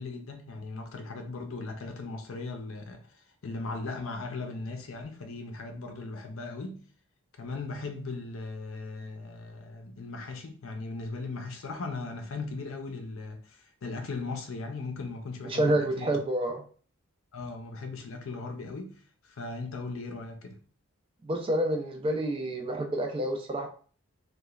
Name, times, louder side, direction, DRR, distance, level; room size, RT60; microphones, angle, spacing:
voice 1, 0.0-3.1 3.4-6.8 7.4-16.2 17.3-19.0 19.3-20.6, left 3 dB, 65° left, 0.5 m, -38 dB
voice 2, 15.5-16.6 21.3-23.7, right 1 dB, 25° right, 0.3 m, -28 dB
2.9 x 2.2 x 2.3 m
head